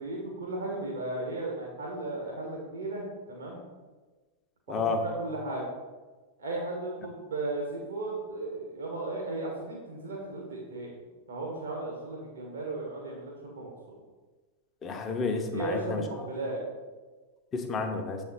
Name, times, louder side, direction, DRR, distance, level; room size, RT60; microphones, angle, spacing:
voice 1, 0.0-3.6 4.7-5.6 6.4-10.9 11.3-14.0 15.5-16.6, right 2 dB, 70° right, -1 dB, 1.3 m, -35 dB
voice 2, 4.7-5.0 14.8-16.0 17.5-18.2, left 4 dB, 25° left, 4 dB, 0.8 m, -30 dB
7.3 x 4.2 x 4.1 m, 1.3 s
figure-of-eight pair, 90°, 0 cm